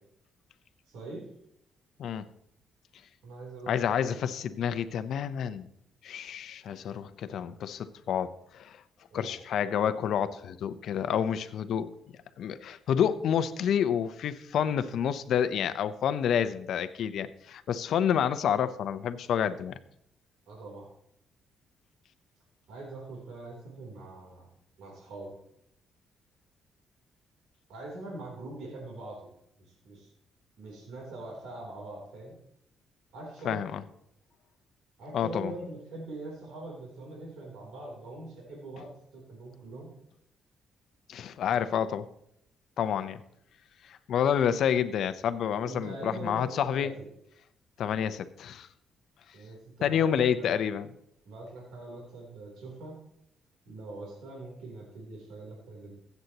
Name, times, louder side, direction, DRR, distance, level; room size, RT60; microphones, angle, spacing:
voice 1, 0.9-1.3 3.2-4.4 9.1-9.4 20.5-20.9 22.7-24.5 24.8-25.4 27.7-29.3 29.6-30.1 30.6-32.4 33.1-33.6 35.0-39.9 45.6-47.1 49.3-50.5 51.3-53.0 53.7-55.9, right 2 dB, 85° right, -2 dB, 3.4 m, -43 dB
voice 2, 3.7-5.7 6.0-8.8 9.1-11.9 12.4-19.7 33.4-33.8 35.1-35.5 41.1-42.1 42.8-43.2 44.1-46.9 47.8-48.7 49.8-50.9, left 8 dB, 70° left, 12 dB, 0.7 m, -29 dB
16.0 x 8.1 x 3.0 m, 0.74 s
cardioid pair, 95°, 0 cm